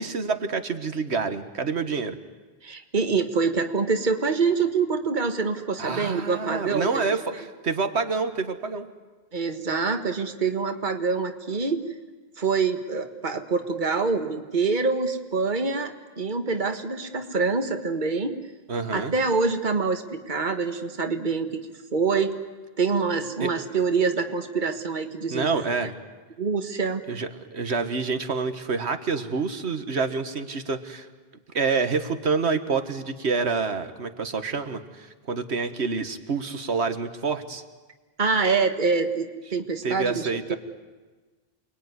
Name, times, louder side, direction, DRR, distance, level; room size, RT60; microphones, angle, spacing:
voice 1, 0.0-2.2 5.8-8.9 18.7-19.1 23.4-23.5 25.3-25.9 27.1-31.1 31.5-37.6 39.8-40.6, right 4 dB, 90° right, 9 dB, 1.8 m, -27 dB
voice 2, 2.6-7.1 9.3-11.8 12.4-18.4 18.9-21.6 21.9-22.4 22.8-25.5 26.4-27.0 38.2-40.6, right 4 dB, 45° right, 6 dB, 1.8 m, -25 dB
29.0 x 21.0 x 9.7 m, 1.3 s
omnidirectional pair, 1.1 m